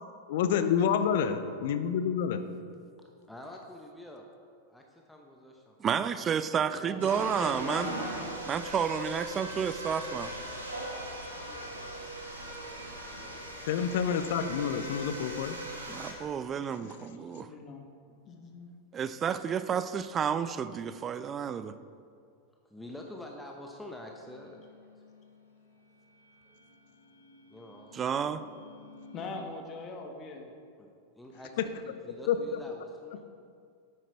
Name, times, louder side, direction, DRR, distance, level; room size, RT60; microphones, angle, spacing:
voice 1, 0.3-2.4 13.7-15.6 31.6-31.7 32.3-32.6, left 8 dB, 55° left, 10 dB, 0.7 m, -28 dB
voice 2, 3.3-4.2 4.7-6.1 6.5-7.2 22.7-24.6 27.5-28.0 30.8-31.6 32.0-33.2, left 1 dB, 5° left, 0 dB, 0.9 m, -47 dB
voice 3, 5.8-7.9 8.5-10.3 15.9-17.5 18.9-21.7 27.9-28.4, right 7 dB, 25° right, 13 dB, 0.5 m, -31 dB
voice 4, 6.8-8.4 16.8-18.7 20.2-20.3 29.1-30.5, left 3 dB, 30° left, 3 dB, 1.4 m, -42 dB
sound 1, 7.0-16.1, right 1 dB, 80° right, 1.7 m, -39 dB
sound 2, 24.2-29.4, left 3 dB, 75° left, 1.6 m, -55 dB
9.7 x 9.2 x 4.5 m, 2.3 s
figure-of-eight pair, 90°, 0 cm